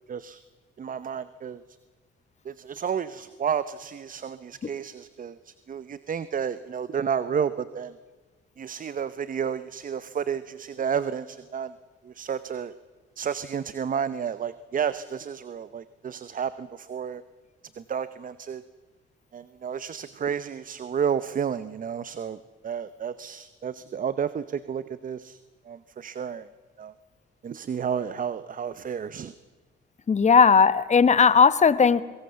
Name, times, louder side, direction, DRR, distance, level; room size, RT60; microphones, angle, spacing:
voice 1, 0.1-0.4 0.8-1.6 2.4-7.9 8.6-11.7 12.0-12.8 13.2-17.2 17.8-18.6 19.3-25.4 25.6-26.5 26.8-26.9 27.4-29.3, right 7 dB, 45° right, 15 dB, 0.9 m, -31 dB
voice 2, 30.1-32.0, left 6 dB, 35° left, 16 dB, 1.1 m, -17 dB
23.5 x 20.0 x 6.9 m, 1.4 s
cardioid pair, 90°, 20 cm